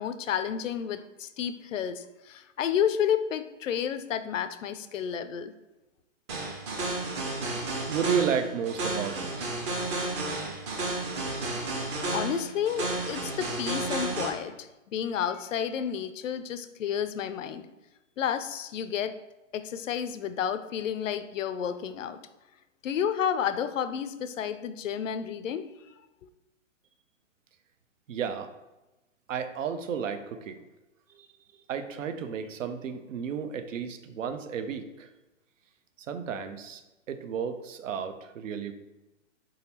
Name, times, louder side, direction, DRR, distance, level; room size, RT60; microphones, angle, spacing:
voice 1, 0.0-5.5 12.1-17.7 18.2-19.2 19.5-22.2 22.8-25.7, left 8 dB, 75° left, 11 dB, 0.5 m, -31 dB
sound 1, 6.3-14.3, right 2 dB, 25° right, 0.6 m, -32 dB
voice 2, 7.9-9.5 28.1-28.5 29.3-30.6 31.1-31.3 31.7-35.1 36.0-36.8 37.1-38.7, right 7 dB, 75° right, 9 dB, 0.6 m, -32 dB
4.3 x 3.9 x 2.8 m, 1.0 s
hypercardioid pair, 145°, 39 cm